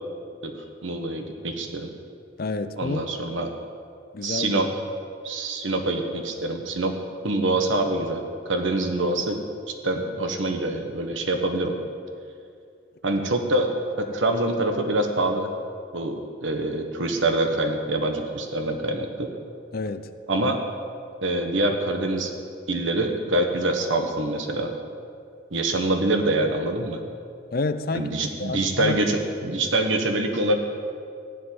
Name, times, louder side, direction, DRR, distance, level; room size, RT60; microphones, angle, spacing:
voice 1, 0.8-1.9 2.8-3.5 4.2-4.7 5.2-6.9 7.2-9.4 9.7-11.7 13.0-13.7 14.0-15.5 15.9-19.3 20.3-20.6 21.2-22.3 22.7-24.7 25.5-27.0 27.9-30.6, right 2 dB, 85° right, 4 dB, 1.3 m, -25 dB
voice 2, 2.4-3.0 4.1-4.6 19.7-20.1 27.5-28.1 28.4-29.0, left 3 dB, 50° left, 11 dB, 0.6 m, -29 dB
15.5 x 5.3 x 9.6 m, 2.4 s
head